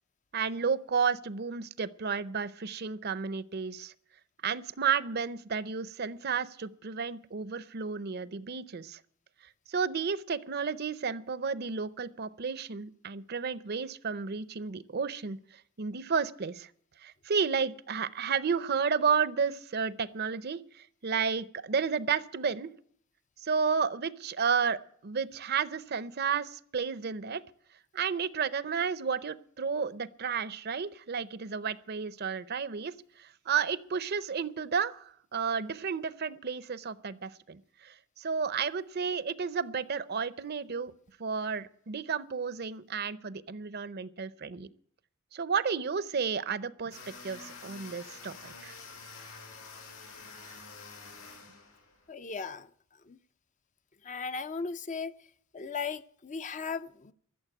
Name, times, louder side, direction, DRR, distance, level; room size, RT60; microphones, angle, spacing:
voice 1, 0.3-3.9 4.4-9.0 9.7-16.7 17.0-22.7 23.4-27.4 27.9-40.9 41.2-44.7 45.3-47.0 47.2-48.8, right 6 dB, 45° right, 0.6 m, -32 dB
sound 1, 46.9-52.1, left 4 dB, 80° left, 5.1 m, -48 dB
voice 2, 52.1-52.7 53.1-53.2 54.0-55.1 55.5-57.1, left 5 dB, 35° left, 0.5 m, -37 dB
14.0 x 7.2 x 9.8 m
head